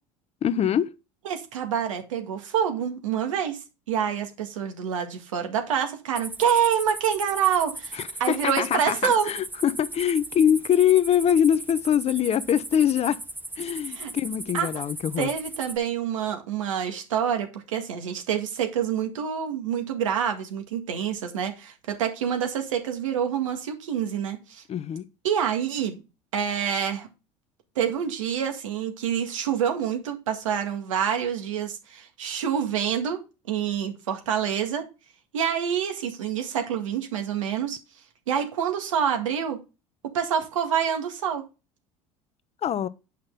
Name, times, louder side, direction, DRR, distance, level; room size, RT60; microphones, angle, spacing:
voice 1, 0.4-0.9 7.9-13.2 13.6-15.3 24.7-25.0 42.6-42.9, left 9 dB, 40° left, 0.7 m, -23 dB
voice 2, 1.3-3.6 3.9-9.3 13.9-14.1 14.5-14.7 15.2-24.6 25.2-26.0 26.3-27.1 27.8-33.2 33.5-34.8 35.3-37.8 38.3-39.6 40.1-41.4, right 8 dB, 90° right, 1.9 m, -27 dB
sound 1, 6.2-15.8, right 2 dB, 10° right, 1.1 m, -38 dB
8.6 x 5.8 x 3.8 m
hypercardioid pair, 80°, 16 cm